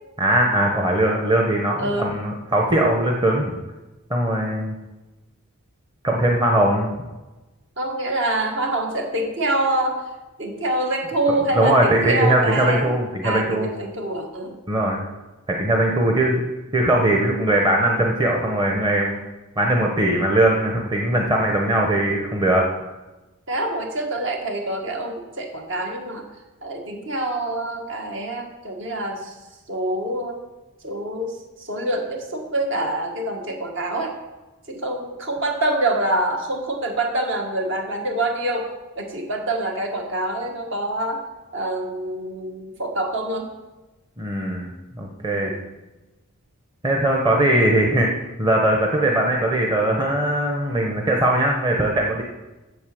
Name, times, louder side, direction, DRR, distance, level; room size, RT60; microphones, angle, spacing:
voice 1, 0.2-3.6 4.1-4.7 6.0-6.9 11.5-13.7 14.7-15.0 15.5-16.4 16.7-19.2 19.6-22.7 44.2-45.5 46.8-48.1 48.4-52.2, right 1 dB, 20° right, 0 dB, 1.0 m, -20 dB
voice 2, 1.8-2.2 7.8-10.0 10.4-12.9 13.2-14.6 23.5-26.2 26.6-29.4 29.7-30.4 30.8-34.1 34.7-38.7 38.9-41.2 41.5-43.5 45.3-45.6, right 1 dB, 55° right, 2 dB, 1.7 m, -26 dB
8.3 x 7.1 x 7.7 m, 1.1 s
head